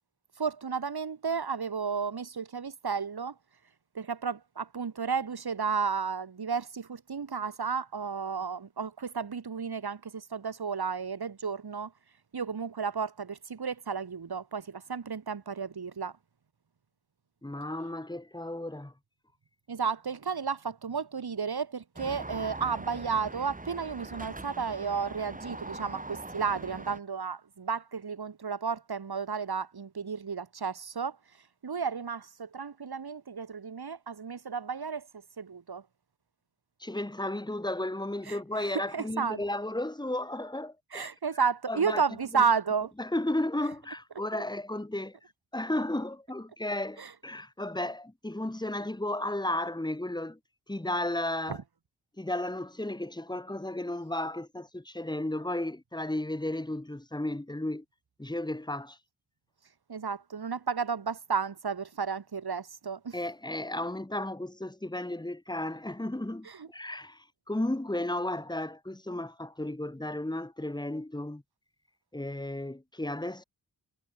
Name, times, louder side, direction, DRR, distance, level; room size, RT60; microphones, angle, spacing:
voice 1, 0.4-3.4 3.9-11.9 12.3-16.2 19.7-35.8 38.3-39.4 40.9-42.9 47.0-47.1 51.5-51.6 59.9-63.2 66.4-66.7, right 5 dB, 70° right, 7.9 m, -33 dB
voice 2, 17.4-18.9 36.8-41.1 41.7-42.0 43.0-45.2 45.5-50.4 50.7-51.6 52.2-57.8 58.2-59.0 63.1-71.4 72.1-73.4, left 1 dB, 10° left, 2.6 m, -34 dB
sound 1, 22.0-27.0, right 2 dB, 20° right, 3.2 m, -42 dB
wide cardioid pair, 105°, 39 cm